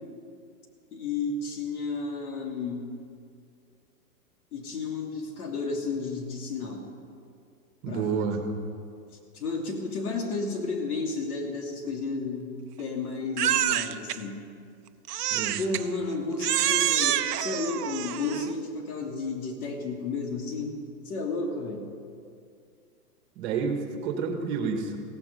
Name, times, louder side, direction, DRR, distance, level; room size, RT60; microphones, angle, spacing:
voice 1, 0.9-2.8 4.5-6.9 7.9-8.3 9.3-14.4 15.6-20.8 21.0-21.9, left 3 dB, 70° left, 1 dB, 3.0 m, -32 dB
voice 2, 7.8-8.4 15.3-15.6 23.3-25.0, right 6 dB, 45° right, 5 dB, 1.8 m, -29 dB
Crying sobbing, 13.4-14.2 15.1-15.9 16.4-18.5, right 11 dB, 85° right, 0.8 m, -27 dB
16.0 x 15.0 x 5.5 m, 2.4 s
hypercardioid pair, 140°, 46 cm